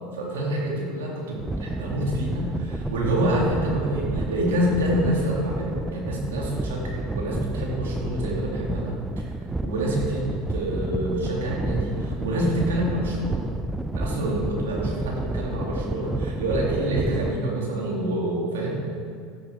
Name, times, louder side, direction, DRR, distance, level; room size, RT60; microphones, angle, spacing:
voice 1, 0.1-9.3 9.6-13.5 13.9-18.8, right 1 dB, 90° right, -3 dB, 2.6 m, -27 dB
sound 1, 1.4-17.4, right 1 dB, 10° right, 0.3 m, -31 dB
13.0 x 10.5 x 3.5 m, 2.2 s
hypercardioid pair, 95°, 0 cm